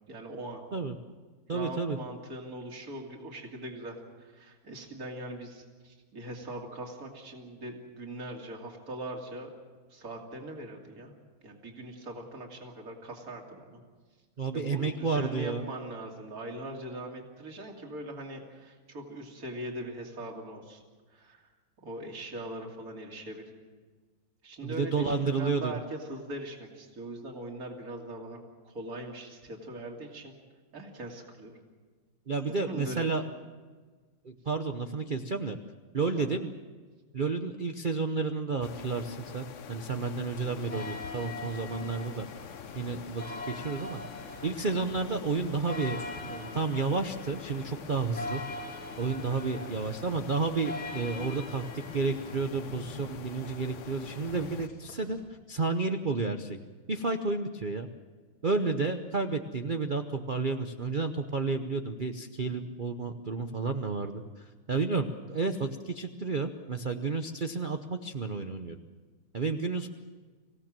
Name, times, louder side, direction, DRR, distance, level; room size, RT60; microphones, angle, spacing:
voice 1, 0.1-0.6 1.5-9.5 9.9-11.1 11.4-13.8 14.5-20.8 21.1-21.5 21.8-23.5 24.4-28.4 28.6-30.3 30.7-31.6 32.6-33.1 35.1-35.2 36.1-36.3 40.3-40.6 41.8-41.9 49.5-49.8, right 1 dB, 45° right, 1 dB, 3.2 m, -41 dB
voice 2, 1.5-2.0 14.4-15.6 24.6-25.7 32.3-33.2 34.2-35.6 35.9-36.5 37.1-42.3 42.7-44.0 44.4-48.4 49.0-55.2 55.5-56.6 56.9-57.9 58.4-68.8 69.3-69.9, right 4 dB, 75° right, 7 dB, 0.4 m, -31 dB
sound 1, 38.6-54.7, left 8 dB, 60° left, 0.8 m, -46 dB
sound 2, 40.4-55.2, left 2 dB, 75° left, 4.4 m, -43 dB
25.5 x 16.5 x 7.5 m, 1.4 s
omnidirectional pair, 2.3 m